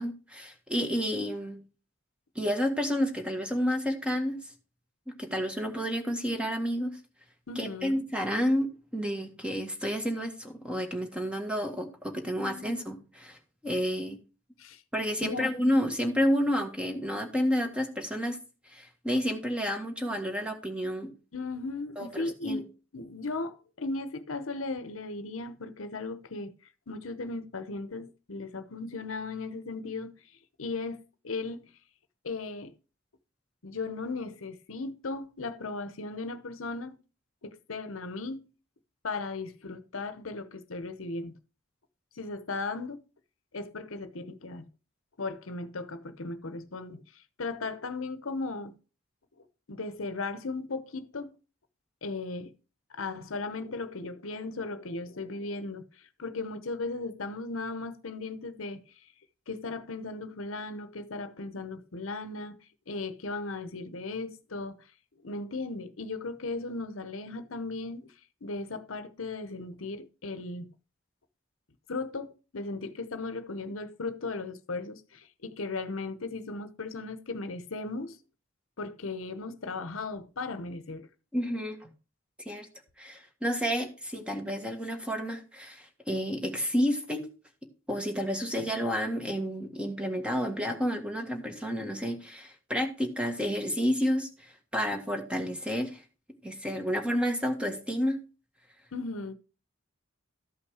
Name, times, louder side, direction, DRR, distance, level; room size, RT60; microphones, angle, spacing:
voice 1, 0.0-1.6 2.3-4.4 5.1-7.0 7.5-8.7 8.9-13.4 13.6-14.2 14.9-18.4 18.7-21.1 22.0-22.6 81.3-81.9 82.4-82.7 83.0-87.2 87.9-94.3 94.7-96.0 96.4-98.2, equal, 5° right, 1.6 m, -30 dB
voice 2, 7.5-8.1 12.4-12.8 14.6-14.8 15.2-15.5 21.3-26.5 26.9-31.7 32.2-32.7 33.6-37.0 37.4-38.5 39.0-41.3 42.1-43.0 43.5-44.7 45.2-48.7 49.7-51.3 52.0-52.5 52.9-59.1 59.5-62.5 62.9-64.8 65.2-68.1 68.4-70.7 71.9-78.2 78.8-81.1 98.9-99.3, left 3 dB, 85° left, 0.9 m, -37 dB
13.0 x 5.6 x 4.9 m
head